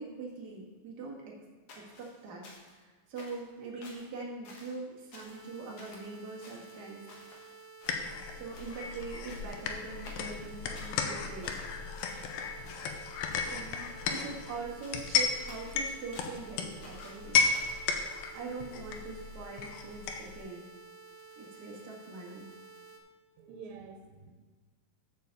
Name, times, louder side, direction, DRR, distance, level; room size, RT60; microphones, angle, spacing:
voice 1, 0.0-1.3 1.7-7.0 8.3-11.6 13.4-17.4 18.3-20.7 21.3-22.5, right 3 dB, 40° right, -4 dB, 1.6 m, -43 dB
sound 1, 1.7-2.8 3.2-3.5 3.8-4.1 4.4-4.8 5.1-5.5 5.8-6.1 6.4-7.5 7.8-8.3 8.5-8.8 9.3-9.6 10.0-11.0 11.4-12.3 12.6-13.7 14.1-14.5 14.8-16.5 16.8-17.8, left 2 dB, 50° left, 2.0 m, -53 dB
sound 2, 5.3-23.0, right 4 dB, 65° right, 2.0 m, -52 dB
sound 3, 7.8-20.4, left 5 dB, 85° left, 2.5 m, -34 dB
voice 2, 23.4-24.3, right 5 dB, 85° right, 4 dB, 2.5 m, -47 dB
7.1 x 6.1 x 6.9 m, 1.4 s
omnidirectional pair, 4.0 m